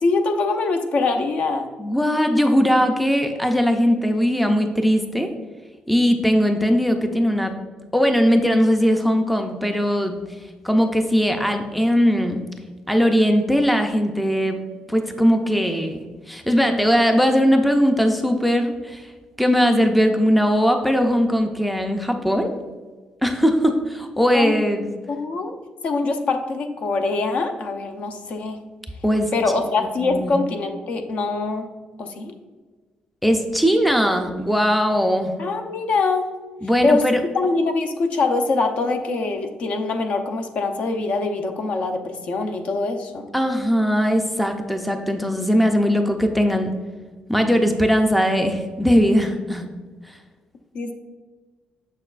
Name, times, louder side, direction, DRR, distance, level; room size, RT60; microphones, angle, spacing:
voice 1, 0.0-1.7 24.3-24.6 25.1-25.5 25.8-28.6 29.3-31.7 32.0-32.3 35.4-36.3 36.8-37.0 37.3-43.3 50.7-50.9, left 3 dB, 55° left, 6 dB, 0.6 m, -23 dB
voice 2, 1.8-5.3 5.9-7.5 7.9-10.2 10.6-12.4 12.9-14.6 14.9-16.0 16.3-19.1 19.4-22.5 23.2-24.9 29.0-29.3 30.0-30.4 33.2-35.3 36.6-37.2 43.3-46.7 47.3-49.7 50.1-50.2, equal, ahead, 5 dB, 0.4 m, -19 dB
6.8 x 6.5 x 2.4 m, 1.4 s
cardioid pair, 170°, 3 cm